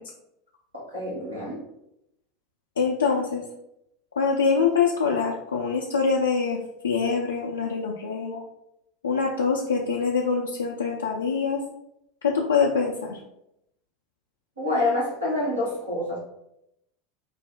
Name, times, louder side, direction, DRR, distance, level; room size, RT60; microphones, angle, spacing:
voice 1, 0.7-1.6 14.6-16.2, left 2 dB, 80° right, -6 dB, 1.2 m, -27 dB
voice 2, 2.8-3.4 4.2-6.6 6.8-8.4 9.0-11.6 12.2-13.2, left 5 dB, 75° left, -2 dB, 0.4 m, -24 dB
4.0 x 2.0 x 3.8 m, 0.82 s
figure-of-eight pair, 80°, 0 cm